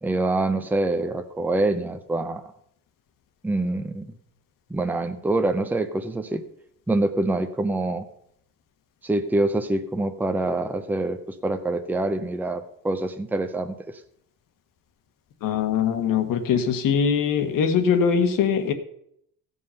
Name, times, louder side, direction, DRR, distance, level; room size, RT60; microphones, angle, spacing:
voice 1, 0.0-2.4 3.4-4.1 4.7-6.4 6.9-8.0 9.0-13.8, right 2 dB, 5° right, 7 dB, 0.6 m, -25 dB
voice 2, 15.4-18.7, left 7 dB, 65° left, 7 dB, 1.4 m, -22 dB
16.0 x 5.5 x 5.6 m, 0.72 s
cardioid pair, 150°, 35 cm